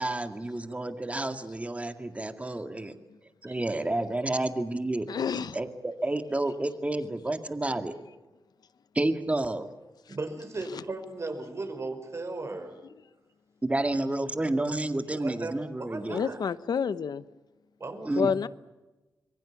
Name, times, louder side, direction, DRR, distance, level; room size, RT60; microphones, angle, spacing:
voice 1, 0.0-2.9 3.4-5.1 5.5-7.9 8.9-9.7 13.6-16.2 18.1-18.3, right 2 dB, 20° right, 2.1 m, -30 dB
voice 2, 5.1-5.6 16.1-17.2 18.2-18.5, left 6 dB, 75° left, 0.9 m, -28 dB
voice 3, 10.1-12.8 15.2-15.5 15.8-16.4 17.8-18.1, right 3 dB, 40° right, 5.3 m, -36 dB
26.0 x 23.0 x 7.3 m
wide cardioid pair, 95°, 7 cm